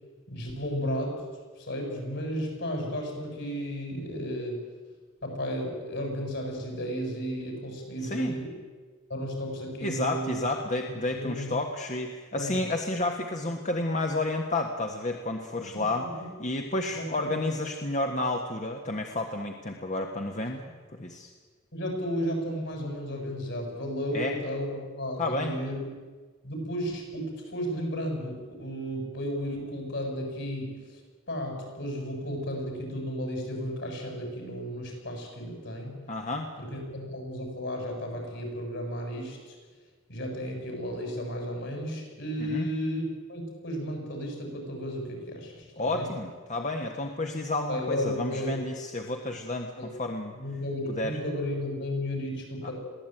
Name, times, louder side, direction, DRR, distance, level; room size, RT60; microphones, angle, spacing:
voice 1, 0.3-1.2 1.6-4.6 5.2-8.5 9.1-10.4 11.1-11.5 12.3-12.5 15.7-16.3 16.9-17.3 21.7-26.0 26.4-31.0 31.3-35.9 36.6-39.6 40.1-46.1 47.7-48.5 49.7-49.9 50.3-52.7, equal, 65° left, 2 dB, 7.8 m, -33 dB
voice 2, 8.0-8.4 9.8-16.1 16.4-20.6 20.9-21.3 24.1-24.3 25.2-25.5 36.1-36.5 42.4-42.7 45.8-50.3 50.9-51.2 52.6-52.7, left 2 dB, 40° left, 3 dB, 1.5 m, -31 dB
22.5 x 16.5 x 9.2 m, 1.4 s
head